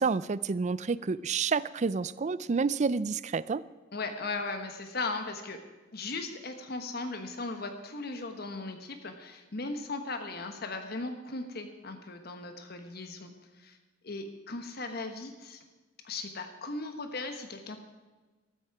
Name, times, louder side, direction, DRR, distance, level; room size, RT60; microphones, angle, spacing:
voice 1, 0.0-3.6, right 5 dB, 35° right, 18 dB, 0.4 m, -29 dB
voice 2, 3.9-5.6 5.9-13.3 13.6-13.8 14.0-15.6 16.0-17.8, left 3 dB, 55° left, 7 dB, 1.2 m, -37 dB
14.0 x 13.5 x 4.8 m, 1.3 s
head